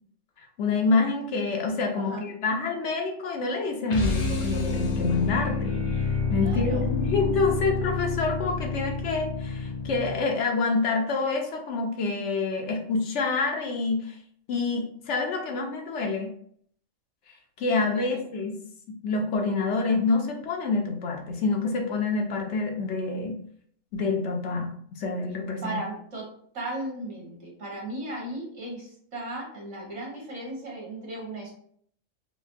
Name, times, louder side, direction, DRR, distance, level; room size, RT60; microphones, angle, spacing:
voice 1, 0.6-5.8 6.3-14.2 14.5-16.3 17.6-18.6 19.0-23.4 23.9-25.8, left 3 dB, 70° left, 2 dB, 0.9 m, -27 dB
sound 1, 3.9-10.3, left 4 dB, 50° left, 0.3 m, -28 dB
voice 2, 6.4-6.9 17.9-18.0 25.6-26.2 26.5-31.5, right 1 dB, 55° right, -4 dB, 1.5 m, -36 dB
4.9 x 2.1 x 2.5 m, 0.62 s
omnidirectional pair, 1.3 m